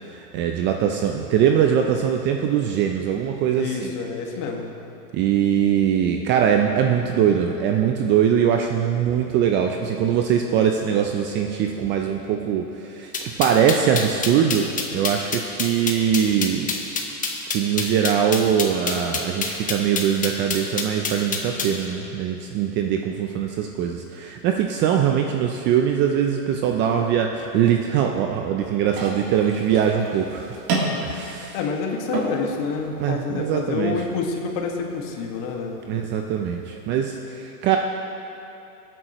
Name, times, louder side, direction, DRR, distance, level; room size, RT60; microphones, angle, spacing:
voice 1, 0.1-3.9 5.1-16.8 17.5-30.6 31.0-31.6 33.0-34.0 35.9-37.8, right 8 dB, 25° right, 3 dB, 0.4 m, -22 dB
voice 2, 3.5-4.7 31.5-35.7, left 5 dB, 45° left, 2 dB, 1.7 m, -28 dB
sound 1, 13.1-21.8, left 5 dB, 15° left, 1.2 m, -27 dB
sound 2, 28.9-36.9, right 3 dB, 65° right, 3.2 m, -33 dB
22.0 x 8.9 x 3.0 m, 2.9 s
hypercardioid pair, 125°, 46 cm